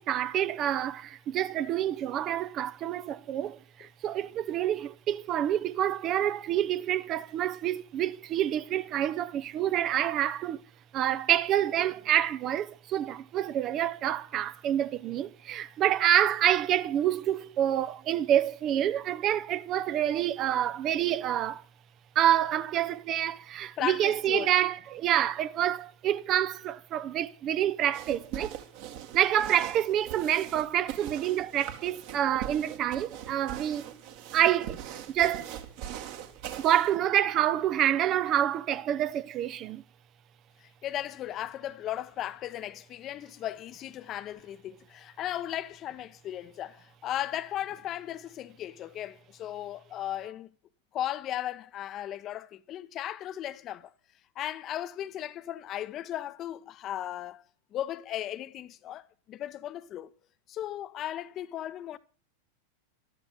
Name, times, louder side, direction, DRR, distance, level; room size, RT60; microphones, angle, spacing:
voice 1, 0.0-10.6 10.9-21.6 22.1-28.6 29.1-33.9 34.3-34.8 35.1-35.5 36.6-39.8, right 11 dB, 35° right, 0.8 m, -27 dB
voice 2, 23.8-24.5 40.6-50.5 50.9-53.9 54.3-57.4 57.7-60.1 60.5-62.0, left 12 dB, 30° left, 1.0 m, -36 dB
sound 1, 27.9-37.0, right 10 dB, 50° right, 2.1 m, -41 dB
13.0 x 12.5 x 7.3 m
figure-of-eight pair, 90°, 0 cm